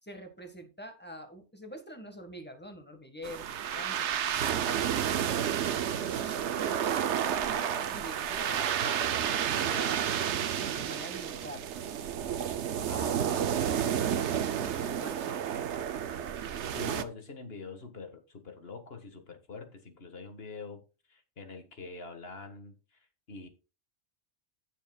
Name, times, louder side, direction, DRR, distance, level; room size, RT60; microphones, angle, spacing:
voice 1, 0.0-3.5 3.7-5.2 6.0-10.1 10.4-11.7 14.0-15.4, equal, 10° left, 6 dB, 1.7 m, -46 dB
sound 1, 3.2-17.0, right 9 dB, 80° right, 1.0 m, -31 dB
voice 2, 12.9-13.8 16.4-20.8 21.1-23.5, left 4 dB, 60° left, 7 dB, 1.9 m, -45 dB
16.0 x 7.2 x 2.4 m, 0.31 s
omnidirectional pair, 1.1 m